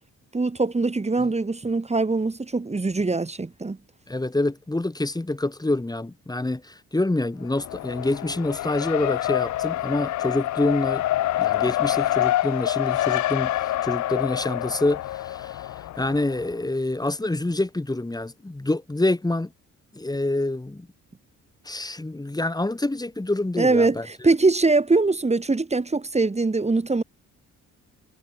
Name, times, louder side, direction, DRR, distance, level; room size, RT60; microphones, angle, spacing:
voice 1, 0.3-3.8 23.6-27.0, right 3 dB, 20° right, 4.6 m, -22 dB
voice 2, 4.1-11.0 11.4-15.7 16.0-19.5 19.9-20.9 21.6-24.1, left 2 dB, 15° left, 5.1 m, -26 dB
Race car auto racing, 7.4-16.5, left 14 dB, 70° left, 0.9 m, -26 dB
cardioid pair, 90°, 30 cm